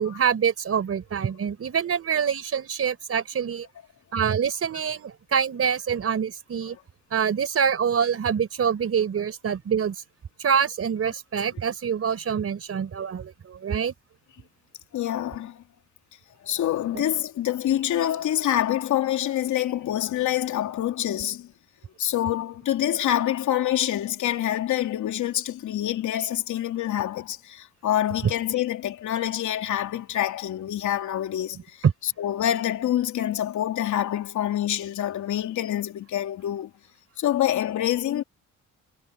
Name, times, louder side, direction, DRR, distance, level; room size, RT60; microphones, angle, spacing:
voice 1, 0.0-3.7 4.1-6.8 7.1-10.0 10.4-13.9 16.9-17.0 31.5-31.9, right 7 dB, 50° right, 4.1 m, -25 dB
voice 2, 14.9-15.6 16.4-21.5 22.0-36.7 37.2-38.2, left 12 dB, 75° left, 2.9 m, -26 dB
cardioid pair, 90°, 30 cm